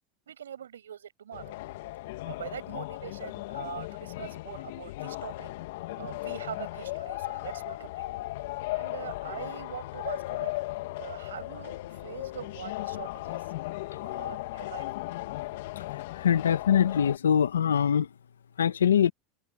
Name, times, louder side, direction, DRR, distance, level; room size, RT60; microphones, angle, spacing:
voice 1, 0.3-1.5 2.2-5.5 6.0-8.1 8.7-10.5 11.0-13.5 14.0-14.9, right 9 dB, 85° right, 7.0 m, -42 dB
sound 1, 1.3-17.2, left 19 dB, 70° left, 2.7 m, -37 dB
voice 2, 16.2-18.1 18.6-19.1, left 8 dB, 90° left, 2.1 m, -23 dB
hypercardioid pair, 90°, 0 cm